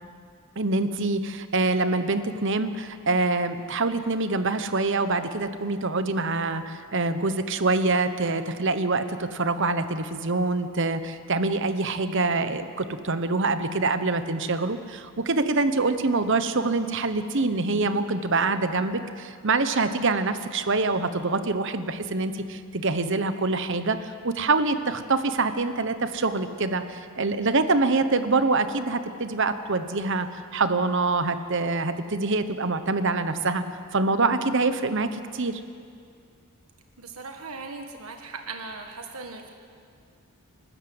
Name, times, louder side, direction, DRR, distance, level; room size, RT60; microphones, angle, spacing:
voice 1, 0.6-33.6 33.9-35.6, right 3 dB, 55° right, 10 dB, 1.1 m, -25 dB
voice 2, 37.0-39.5, right 4 dB, 75° right, 4 dB, 1.6 m, -38 dB
28.5 x 13.0 x 7.9 m, 2.3 s
head